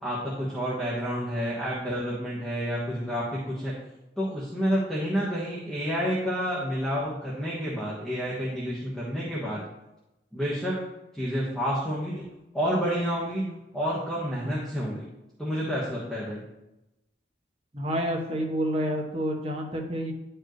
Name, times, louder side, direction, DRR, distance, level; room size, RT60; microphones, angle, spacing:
voice 1, 0.0-3.7 4.2-9.6 10.3-10.8 11.1-12.2 12.5-15.0 15.4-16.5, equal, 5° left, -8 dB, 1.3 m, -29 dB
voice 2, 17.7-20.1, equal, 35° right, 1 dB, 1.1 m, -29 dB
10.5 x 4.7 x 3.1 m, 0.94 s
head